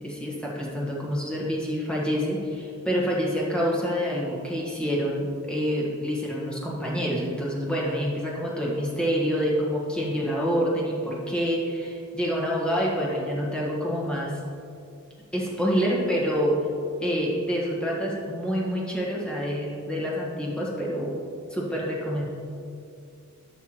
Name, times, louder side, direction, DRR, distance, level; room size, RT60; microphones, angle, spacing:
voice 1, 0.0-14.4 15.3-16.7 17.0-21.2 21.5-22.2, equal, 5° left, -5 dB, 1.4 m, -27 dB
13.0 x 5.8 x 3.0 m, 2.4 s
head